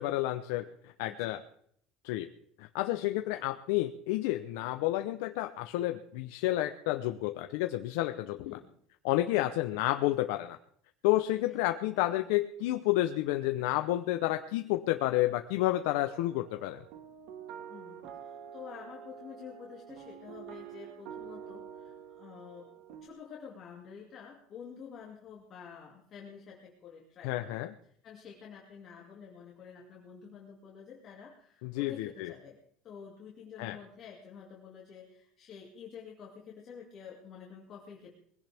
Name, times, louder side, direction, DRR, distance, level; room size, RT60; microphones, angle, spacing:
voice 1, 0.0-1.4 2.0-2.3 2.6-8.6 9.0-10.6 11.0-16.8 27.2-27.7 31.6-32.3 33.6-33.8, left 16 dB, 70° left, 7 dB, 0.8 m, -30 dB
voice 2, 1.0-1.4 3.3-3.4 8.4-8.7 11.5-11.6 17.7-27.6 28.0-32.6 32.8-38.1, left 7 dB, 30° left, -2 dB, 2.4 m, -49 dB
sound 1, 15.9-23.1, right 8 dB, 55° right, 1.8 m, -47 dB
21.0 x 16.5 x 3.5 m, 0.66 s
cardioid pair, 175°, 0 cm